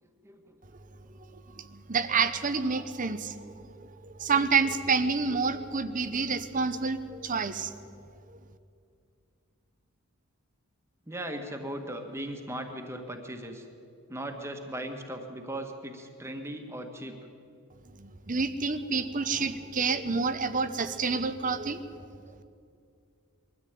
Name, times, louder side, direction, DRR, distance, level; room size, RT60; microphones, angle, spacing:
voice 1, 0.0-0.5 11.1-13.7 14.1-17.2, right 1 dB, 10° right, 4 dB, 1.7 m, -38 dB
voice 2, 1.6-3.5 3.7-7.7 18.0-21.9 22.3-22.4, right 4 dB, 35° right, 12 dB, 0.8 m, -28 dB
22.0 x 13.5 x 9.2 m, 2.5 s
head